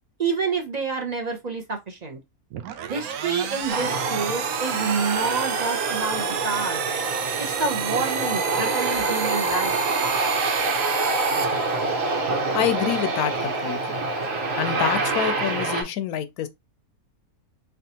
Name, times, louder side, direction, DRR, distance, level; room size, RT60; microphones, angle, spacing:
voice 1, 0.2-2.2 2.9-6.8 7.4-9.8, right 4 dB, 40° right, 0.7 m, -28 dB
sound 1, 2.5-12.2, right 9 dB, 80° right, 1.1 m, -31 dB
Aircraft, 3.7-15.8, right 3 dB, 65° right, 1.5 m, -26 dB
voice 2, 12.5-14.0 14.6-16.5, left 10 dB, 80° left, 1.0 m, -27 dB
3.9 x 3.4 x 2.8 m
omnidirectional pair, 1.5 m